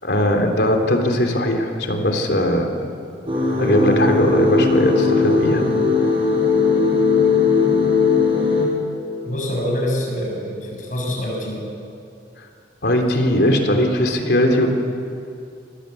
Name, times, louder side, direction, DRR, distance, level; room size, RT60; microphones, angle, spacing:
voice 1, 0.0-2.8 3.6-5.6 12.8-14.8, left 1 dB, 65° left, 3 dB, 3.5 m, -19 dB
sound 1, 3.3-8.7, left 4 dB, 30° right, 6.6 m, -18 dB
voice 2, 9.2-11.6, left 1 dB, 45° left, -1 dB, 7.2 m, -25 dB
28.5 x 23.0 x 8.5 m, 2.5 s
head